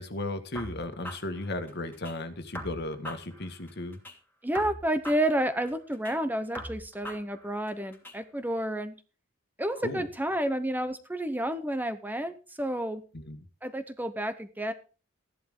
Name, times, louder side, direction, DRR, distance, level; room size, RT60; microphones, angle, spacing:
voice 1, 0.0-4.0 9.8-10.1 13.1-13.4, left 2 dB, 55° left, 8 dB, 1.7 m, -35 dB
sound 1, 0.6-2.2 2.5-4.2 4.5-6.2 6.5-8.2, equal, 10° left, 2.7 m, -42 dB
voice 2, 4.4-9.0 9.6-13.0 13.6-14.7, right 1 dB, 10° right, 10 dB, 0.9 m, -30 dB
14.5 x 11.0 x 3.8 m, 0.34 s
head